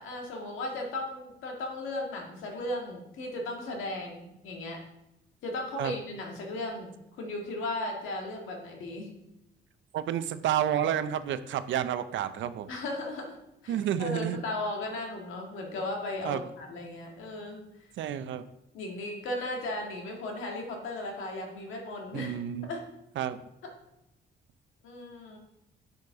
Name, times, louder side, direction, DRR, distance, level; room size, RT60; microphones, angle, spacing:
voice 1, 0.0-4.8 5.4-6.9 7.2-9.1 12.7-13.4 13.6-17.6 18.7-22.3 22.7-22.8 23.6-23.7 24.8-25.4, left 2 dB, 85° left, 1 dB, 1.8 m, -36 dB
voice 2, 9.9-12.7 13.7-14.4 16.2-16.4 18.0-18.5 22.1-22.7 23.2-23.4, right 10 dB, 70° right, 12 dB, 0.6 m, -30 dB
6.7 x 5.2 x 4.7 m, 0.90 s
cardioid pair, 90°, 20 cm